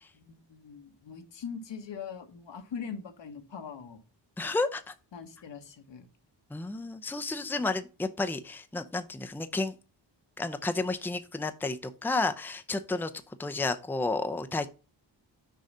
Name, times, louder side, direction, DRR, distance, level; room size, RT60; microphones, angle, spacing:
voice 1, 0.1-4.0 5.1-6.1 7.6-7.7, left 6 dB, 80° left, 6 dB, 1.5 m, -42 dB
voice 2, 4.4-4.9 6.5-9.7 10.4-13.1 13.4-14.7, left 3 dB, 5° left, 8 dB, 0.6 m, -31 dB
6.6 x 4.8 x 5.4 m, 0.34 s
wide cardioid pair, 125°, 43 cm